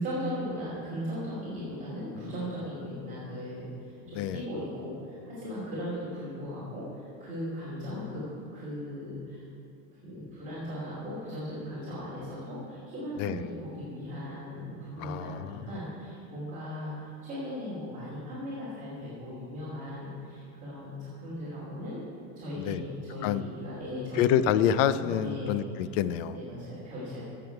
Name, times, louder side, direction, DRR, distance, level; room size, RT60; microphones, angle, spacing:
voice 1, 0.0-8.2 8.5-9.4 10.0-22.0 22.4-24.6 24.9-25.5 26.3-27.2, equal, 20° right, -10 dB, 2.7 m, -38 dB
voice 2, 15.0-15.6 22.6-22.8 23.2-23.5 24.2-26.3, left 9 dB, 75° left, 14 dB, 0.6 m, -27 dB
16.0 x 7.1 x 4.6 m, 2.6 s
cardioid pair, 175°, 38 cm